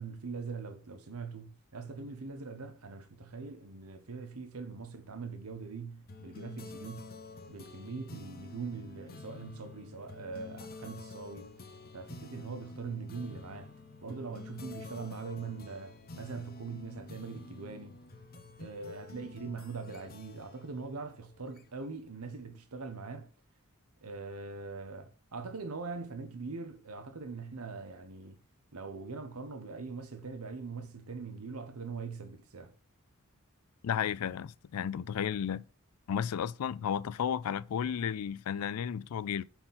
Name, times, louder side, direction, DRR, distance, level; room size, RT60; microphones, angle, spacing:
voice 1, 0.0-7.1 7.5-11.6 11.9-13.7 14.0-18.0 18.6-23.3 24.0-28.4 28.7-32.7, right 4 dB, 75° right, 0.9 m, -42 dB
sound 1, 6.1-22.0, left 3 dB, 45° left, 0.9 m, -49 dB
voice 2, 33.8-35.6 36.1-39.4, left 8 dB, 80° left, 0.4 m, -33 dB
5.6 x 4.5 x 5.6 m
head